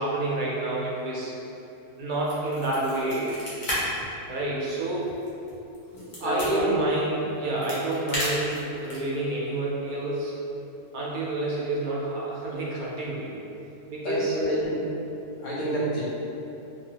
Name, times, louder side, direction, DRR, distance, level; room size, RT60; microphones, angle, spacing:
voice 1, 0.0-1.3 2.0-3.3 4.3-5.1 6.2-10.3 10.9-13.3 13.9-14.4, right 2 dB, 55° right, -5 dB, 0.6 m, -28 dB
sound 1, 2.2-3.8 4.1-4.2 4.7-6.5 7.3-9.2, equal, 40° left, 0.9 m, -33 dB
voice 2, 6.2-6.6 14.0-14.8 15.4-16.0, right 1 dB, 80° left, -9 dB, 1.2 m, -28 dB
3.1 x 2.3 x 2.8 m, 2.9 s
omnidirectional pair, 1.3 m